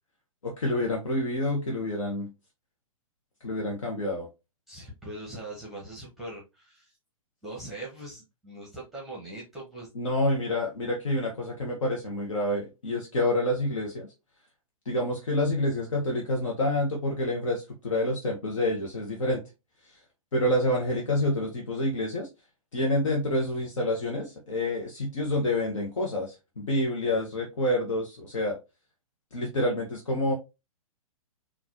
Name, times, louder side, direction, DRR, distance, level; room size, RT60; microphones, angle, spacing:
voice 1, 0.4-2.3 3.4-4.3 9.9-14.1 14.9-19.4 19.9-20.0 20.3-22.3 22.7-28.6 29.3-30.3, left 1 dB, 60° left, 0.9 m, -28 dB
voice 2, 4.7-6.9 7.4-9.9, right 1 dB, ahead, 1.1 m, -41 dB
4.0 x 2.4 x 2.8 m
figure-of-eight pair, 115°, 19 cm